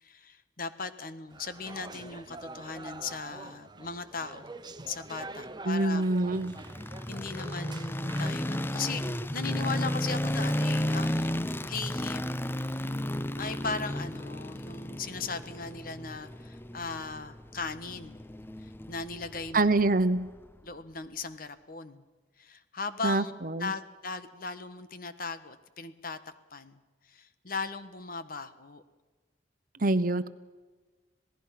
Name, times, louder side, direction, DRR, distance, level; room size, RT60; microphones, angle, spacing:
voice 1, 0.0-4.5 4.8-6.1 7.1-12.8 13.4-18.2 18.6-19.8 20.6-22.0 22.4-23.3 23.6-26.2 26.5-26.8 27.0-28.8, left 4 dB, 55° left, 11 dB, 1.3 m, -38 dB
sound 1, 1.3-8.3, right 2 dB, 25° right, 0.8 m, -45 dB
voice 2, 5.6-6.6 19.5-20.3 23.0-23.7 29.8-30.3, right 2 dB, 50° right, 12 dB, 1.0 m, -25 dB
sound 2, 6.4-20.5, left 1 dB, 15° left, 0.6 m, -33 dB
27.0 x 18.0 x 5.9 m, 1.3 s
head